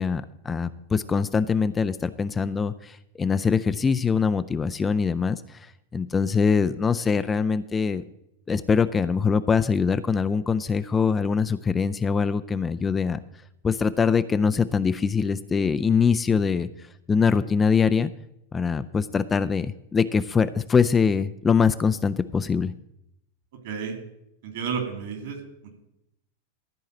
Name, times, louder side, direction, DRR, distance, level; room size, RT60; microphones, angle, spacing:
voice 1, 0.0-5.6 5.9-8.0 8.5-13.2 13.6-16.7 17.1-18.1 18.5-22.7, left 5 dB, 15° left, 12 dB, 0.4 m, -23 dB
voice 2, 23.6-24.0 24.4-25.4, right 6 dB, 55° right, 3 dB, 2.7 m, -31 dB
13.5 x 4.7 x 7.5 m, 0.81 s
figure-of-eight pair, 90°, 0 cm